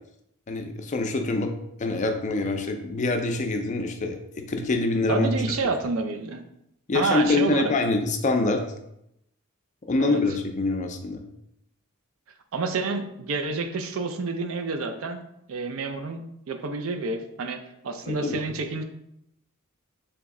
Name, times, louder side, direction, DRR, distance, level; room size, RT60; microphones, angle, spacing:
voice 1, 0.5-1.5 1.8-4.2 4.5-5.4 6.9-8.6 9.9-11.2 18.1-18.4, left 2 dB, 35° left, 4 dB, 0.4 m, -25 dB
voice 2, 5.1-6.4 6.9-7.7 10.0-10.2 12.5-15.2 15.5-18.8, right 3 dB, 65° right, 7 dB, 0.4 m, -29 dB
3.4 x 3.0 x 3.6 m, 0.79 s
head